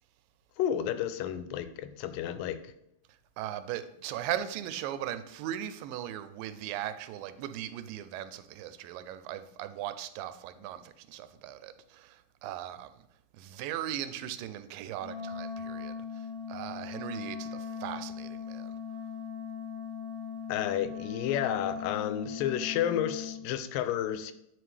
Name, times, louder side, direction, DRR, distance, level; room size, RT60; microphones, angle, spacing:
voice 1, 0.6-2.7 20.5-24.3, left 10 dB, 90° left, 2.3 m, -31 dB
voice 2, 3.4-13.1 13.3-18.7, right 11 dB, 90° right, 2.2 m, -38 dB
Wind instrument woodwind instrument, 15.0-23.4, left 7 dB, 25° left, 1.3 m, -39 dB
10.0 x 4.5 x 3.3 m
omnidirectional pair, 3.9 m